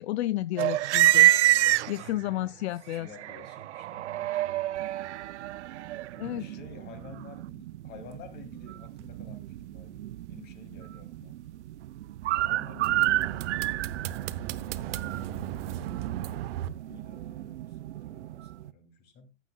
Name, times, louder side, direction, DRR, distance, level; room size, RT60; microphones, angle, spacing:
voice 1, 0.0-1.3 1.9-3.1 6.2-6.4, left 15 dB, 70° left, 0.5 m, -31 dB
sound 1, 0.6-2.3 2.9-18.7, right 14 dB, 90° right, 0.6 m, -29 dB
voice 2, 1.7-2.4 2.7-4.4 6.1-11.4 12.3-13.9 14.4-16.1 16.9-19.4, left 5 dB, 30° left, 2.8 m, -51 dB
sound 2, 12.8-16.7, right 12 dB, 60° right, 0.9 m, -36 dB
15.0 x 10.5 x 2.3 m
supercardioid pair, 145°, 34 cm